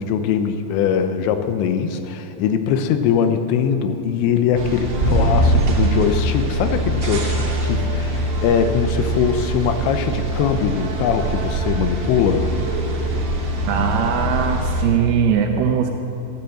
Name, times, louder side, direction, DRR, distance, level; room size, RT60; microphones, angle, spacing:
voice 1, 0.0-12.5, left 7 dB, 85° left, 8 dB, 3.1 m, -21 dB
sound 1, 4.5-14.9, right 1 dB, 45° right, 2.7 m, -22 dB
voice 2, 13.7-15.9, right 7 dB, 75° right, 4 dB, 2.5 m, -20 dB
14.0 x 13.0 x 7.6 m, 2.7 s
omnidirectional pair, 5.1 m